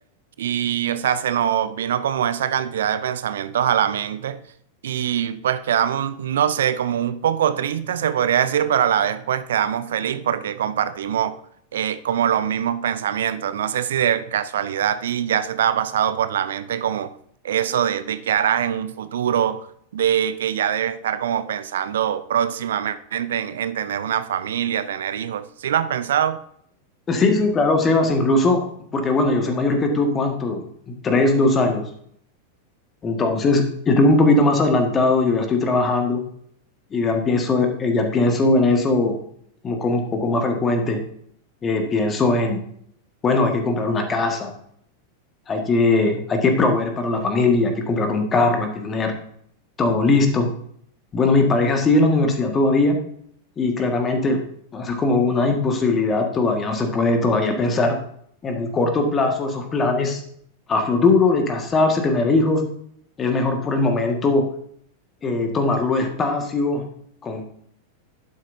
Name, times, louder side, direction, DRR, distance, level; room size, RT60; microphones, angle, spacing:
voice 1, 0.4-4.4 4.8-11.4 11.7-17.2 17.4-19.7 19.9-26.4, right 9 dB, 60° right, 0.6 m, -23 dB
voice 2, 27.1-28.6 28.9-31.8 33.0-36.2 36.9-39.2 39.6-41.0 41.6-42.6 43.2-44.5 45.5-49.1 49.8-50.5 51.1-53.0 53.6-54.4 54.7-58.0 58.4-60.2 60.7-62.6 63.2-64.4 65.2-66.8 67.2-67.4, left 3 dB, 20° left, 1.8 m, -20 dB
11.0 x 9.7 x 2.7 m
figure-of-eight pair, 90°, 0 cm